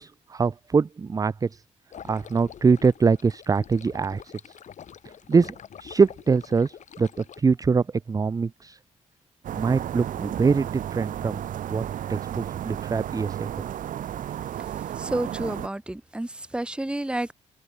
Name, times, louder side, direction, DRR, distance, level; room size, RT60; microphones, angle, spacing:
voice 1, 0.0-1.6 2.0-4.6 5.0-8.8 9.5-11.4 11.7-11.8 12.1-13.5, right 5 dB, 25° right, 0.5 m, -24 dB
sound 1, 1.9-7.4, left 8 dB, 60° left, 2.5 m, -45 dB
sound 2, 9.4-15.7, right 11 dB, 75° right, 2.5 m, -33 dB
voice 2, 15.0-17.3, right 1 dB, 5° right, 1.3 m, -30 dB
cardioid pair, 80°, 14 cm